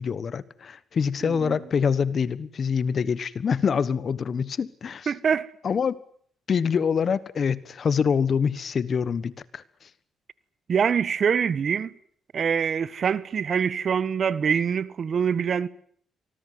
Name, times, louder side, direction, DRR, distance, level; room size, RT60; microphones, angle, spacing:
voice 1, 0.0-5.1 5.6-6.0 6.5-9.6, left 6 dB, 50° left, 1.4 m, -25 dB
voice 2, 1.2-1.6 5.1-5.5 10.7-11.9 12.3-15.7, right 7 dB, 50° right, 1.3 m, -24 dB
25.0 x 19.5 x 9.5 m
cardioid pair, 90°, 0 cm